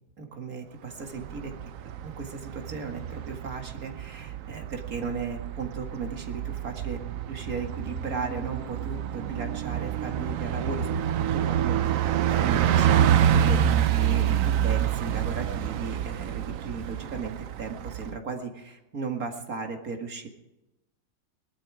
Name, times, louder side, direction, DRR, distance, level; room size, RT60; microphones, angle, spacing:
voice 1, 0.2-1.5 2.0-7.0 7.3-10.9 11.3-20.3, right 5 dB, 50° right, 3 dB, 2.3 m, -35 dB
Bus, 1.1-18.1, right 10 dB, 70° right, 0.8 m, -27 dB
19.0 x 12.5 x 4.9 m, 0.96 s
omnidirectional pair, 2.1 m